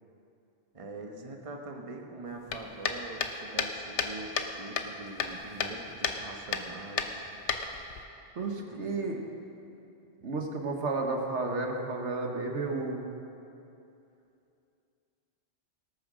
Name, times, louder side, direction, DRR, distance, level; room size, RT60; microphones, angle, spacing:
voice 1, 0.7-7.2 8.6-8.8, right 2 dB, 30° right, 2 dB, 1.2 m, -43 dB
sound 1, 2.5-4.5 4.8-5.8 6.0-6.2 6.5-6.7 7.0-8.0, left 6 dB, 80° left, 1.2 m, -31 dB
voice 2, 8.3-9.2 10.2-13.1, right 3 dB, 85° right, 2 dB, 1.6 m, -32 dB
18.5 x 8.7 x 6.3 m, 2.8 s
omnidirectional pair, 1.2 m